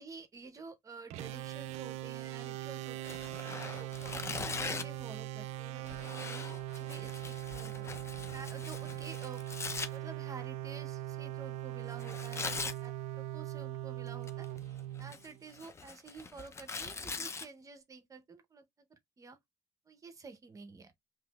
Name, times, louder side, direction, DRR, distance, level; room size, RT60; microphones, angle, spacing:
voice 1, 0.0-3.2 3.6-7.9 8.3-9.5 9.9-14.5 15.0-18.6 18.9-19.4 19.9-20.9, right 4 dB, 30° right, 0.6 m, -50 dB
buzzy note, 1.1-15.7, right 13 dB, 75° right, 0.4 m, -41 dB
Tearing, 3.0-5.0 5.9-9.9 12.0-12.8 14.1-14.6 15.0-17.5, left 4 dB, 25° left, 0.5 m, -41 dB
5.7 x 2.8 x 2.2 m
cardioid pair, 100°, 11 cm